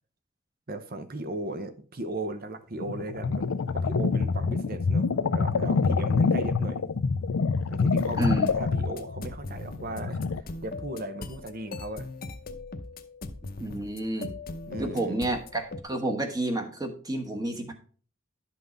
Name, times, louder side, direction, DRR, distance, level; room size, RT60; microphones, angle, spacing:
voice 1, 0.7-6.9 7.7-12.1 14.7-15.2, right 2 dB, 45° right, 0.9 m, -37 dB
sound 1, 2.8-10.4, left 4 dB, 90° left, 0.5 m, -26 dB
sound 2, 8.0-15.8, left 2 dB, 45° left, 0.8 m, -40 dB
voice 2, 8.2-8.5 13.6-14.3 14.8-17.7, right 1 dB, 20° right, 1.2 m, -30 dB
11.0 x 5.7 x 4.0 m
head